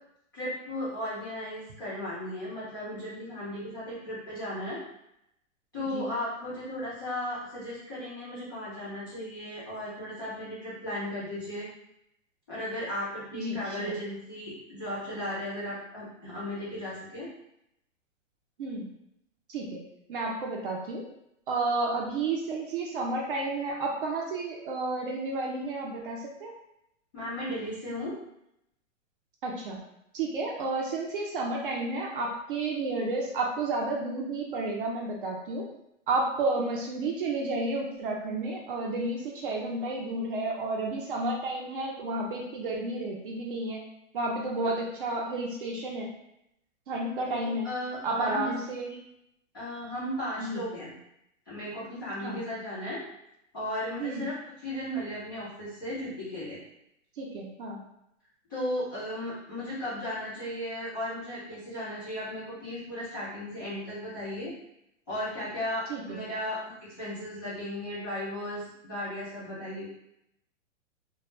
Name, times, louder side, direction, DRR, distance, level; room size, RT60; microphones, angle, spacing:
voice 1, 0.3-4.8 5.7-11.7 12.5-17.3 27.1-28.2 47.2-48.5 48.9-49.0 49.5-50.9 51.5-53.0 53.5-54.3 54.6-56.6 58.5-64.5 65.1-69.9, left 1 dB, 15° left, -12 dB, 0.4 m, -35 dB
voice 2, 5.8-6.1 13.3-14.0 18.6-18.9 19.5-19.8 20.1-21.1 21.5-26.5 29.4-29.8 30.1-35.7 36.1-43.8 44.1-46.1 46.9-47.7 48.0-48.9 50.4-50.6 52.2-52.4 54.0-54.2 57.2-57.8 65.9-66.2, right 2 dB, 45° right, -1 dB, 0.5 m, -31 dB
2.2 x 2.0 x 3.0 m, 0.81 s
hypercardioid pair, 155°, 40 cm